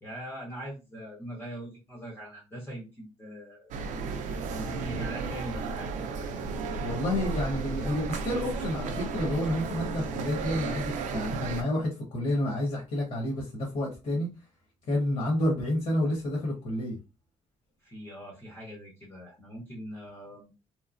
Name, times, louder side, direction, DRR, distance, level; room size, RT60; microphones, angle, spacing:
voice 1, 0.0-3.7 4.5-5.9 17.8-20.5, equal, 20° left, -2 dB, 0.8 m, -41 dB
sound 1, 3.7-11.6, right 4 dB, 80° right, 0.5 m, -33 dB
voice 2, 6.8-14.3 14.9-17.0, left 1 dB, 60° left, -2 dB, 1.2 m, -29 dB
3.1 x 2.0 x 2.5 m, 0.28 s
cardioid pair, 175°, 13 cm